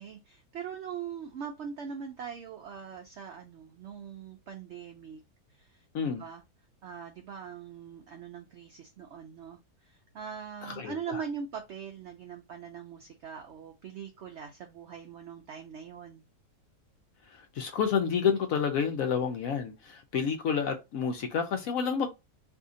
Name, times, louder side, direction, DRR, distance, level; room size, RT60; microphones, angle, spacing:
voice 1, 0.0-5.2 5.5-6.4 6.8-16.2, right 7 dB, 80° right, 0.6 m, -42 dB
voice 2, 10.6-11.2 17.3-22.1, left 6 dB, 70° left, 0.8 m, -29 dB
2.7 x 2.6 x 3.6 m
omnidirectional pair, 1.8 m